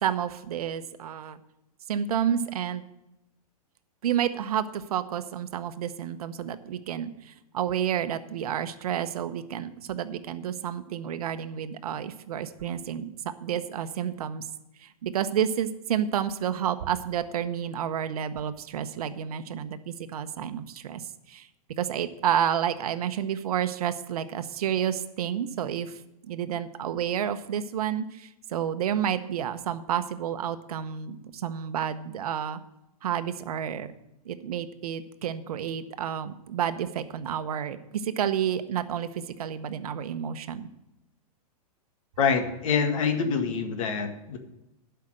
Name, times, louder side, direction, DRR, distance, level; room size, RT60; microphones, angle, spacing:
voice 1, 0.0-1.4 1.9-2.8 4.0-13.1 13.4-14.4 14.8-21.5 21.8-32.6 33.0-33.9 34.2-40.7, right 9 dB, 70° right, 11 dB, 0.9 m, -30 dB
voice 2, 42.2-44.4, left 6 dB, 55° left, 6 dB, 1.7 m, -26 dB
11.5 x 5.7 x 7.6 m, 0.91 s
hypercardioid pair, 155°, 20 cm